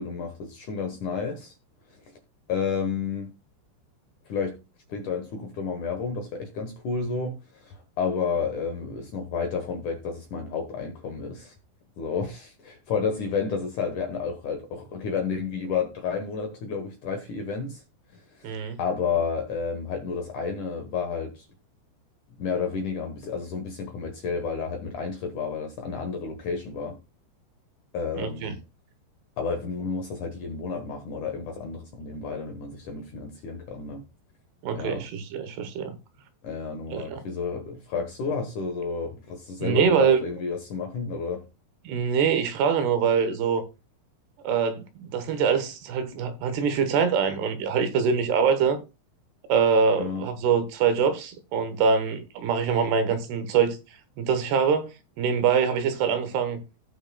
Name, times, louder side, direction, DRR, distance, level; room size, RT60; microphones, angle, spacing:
voice 1, 0.0-1.5 2.5-3.3 4.3-4.6 4.9-11.5 12.0-17.8 18.4-21.5 22.4-27.0 27.9-28.6 29.4-34.0 34.8-35.0 36.4-41.4 50.0-50.3, left 5 dB, 65° left, 2.1 m, -31 dB
voice 2, 18.4-18.8 28.1-28.5 34.6-36.0 36.9-37.2 39.6-40.2 41.9-43.6 44.4-48.8 49.5-53.8 54.2-54.9 55.2-56.6, right 6 dB, 75° right, 3.0 m, -24 dB
17.5 x 5.8 x 2.3 m
omnidirectional pair, 5.0 m